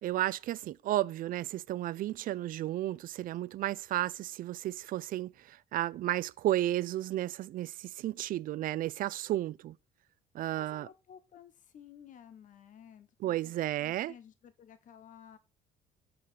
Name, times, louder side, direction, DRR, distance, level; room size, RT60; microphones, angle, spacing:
voice 1, 0.0-9.8 10.3-10.9 13.2-14.1, right 14 dB, 55° right, 0.4 m, -33 dB
voice 2, 10.5-13.5 13.8-15.4, left 8 dB, 50° left, 1.0 m, -54 dB
5.2 x 4.2 x 5.6 m
cardioid pair, 110°, 17 cm